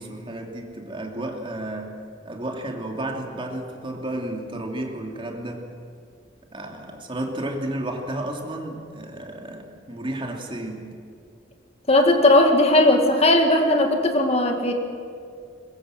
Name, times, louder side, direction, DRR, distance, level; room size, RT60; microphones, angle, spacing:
voice 1, 0.0-1.9 2.2-5.7 6.5-10.9, right 1 dB, 30° right, 2 dB, 2.7 m, -32 dB
voice 2, 11.9-14.7, left 1 dB, 35° left, 4 dB, 2.0 m, -17 dB
22.0 x 21.5 x 7.8 m, 2.3 s
head